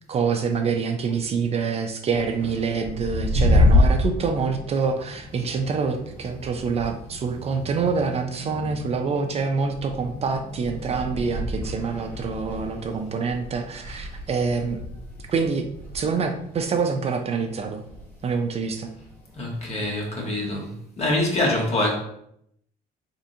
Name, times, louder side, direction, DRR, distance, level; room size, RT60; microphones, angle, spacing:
voice 1, 0.1-14.8 15.3-15.7 15.9-17.8 18.2-18.9, right 5 dB, 40° right, 5 dB, 0.5 m, -26 dB
sound 1, 2.1-20.7, left 1 dB, 10° left, 1.0 m, -28 dB
voice 2, 19.4-20.7 21.0-22.0, left 1 dB, 40° left, -2 dB, 1.3 m, -24 dB
3.8 x 3.5 x 2.7 m, 0.72 s
cardioid pair, 110°, 17 cm